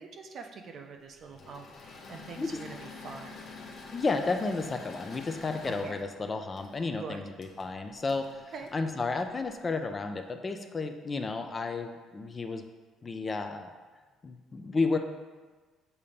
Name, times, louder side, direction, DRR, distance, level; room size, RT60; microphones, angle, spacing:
voice 1, 0.0-3.5 5.7-6.0 7.0-7.2 8.5-8.7, right 5 dB, 45° right, 4 dB, 0.5 m, -44 dB
Engine / Mechanisms, 1.2-9.6, left 4 dB, 45° left, 0.9 m, -48 dB
voice 2, 3.9-12.6 13.0-13.7 14.2-15.0, left 3 dB, 25° left, 6 dB, 0.4 m, -32 dB
6.8 x 2.8 x 5.0 m, 1.4 s
cardioid pair, 140°, 0 cm